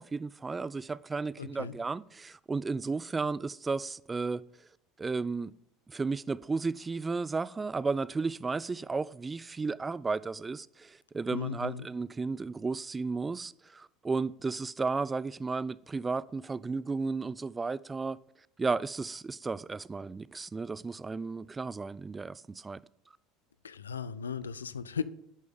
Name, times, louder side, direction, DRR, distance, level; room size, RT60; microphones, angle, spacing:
voice 1, 0.0-4.4 5.0-5.5 5.9-18.2 18.6-22.8, right 4 dB, 20° right, 0.3 m, -33 dB
voice 2, 1.4-1.7 11.3-11.9 23.6-25.0, left 6 dB, 80° left, 0.4 m, -36 dB
11.0 x 6.2 x 3.7 m
figure-of-eight pair, 70°, 0 cm